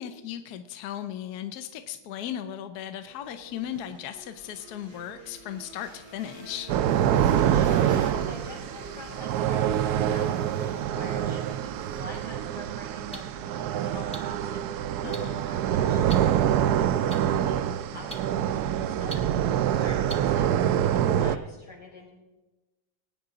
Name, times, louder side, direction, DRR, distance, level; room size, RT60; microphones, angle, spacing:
voice 1, 0.0-6.7 15.0-15.4, left 10 dB, 70° left, 10 dB, 1.0 m, -37 dB
sound 1, 3.0-12.8, right 1 dB, 65° right, 4.2 m, -46 dB
sound 2, 6.7-21.4, right 10 dB, 85° right, 0.8 m, -25 dB
voice 2, 7.5-22.1, left 2 dB, 50° left, -5 dB, 5.6 m, -46 dB
sound 3, 12.1-12.2 13.1-13.2 14.1-14.2 15.1-15.2 16.1-16.2 17.1-17.2 18.1-18.2 19.1-19.2 20.1-20.2, right 1 dB, 5° left, 0.9 m, -36 dB
20.5 x 9.3 x 3.8 m, 1.1 s
omnidirectional pair, 2.2 m